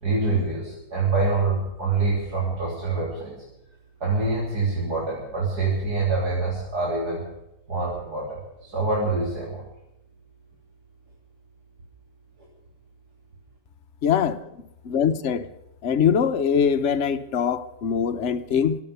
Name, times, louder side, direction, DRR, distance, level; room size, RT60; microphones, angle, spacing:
voice 1, 0.0-3.3 4.0-7.2 7.7-9.6, right 3 dB, 75° right, 3.9 m, -25 dB
voice 2, 14.0-14.4 14.9-15.5 15.8-18.8, left 7 dB, 50° left, 1.0 m, -22 dB
23.0 x 8.7 x 6.7 m
omnidirectional pair, 1.7 m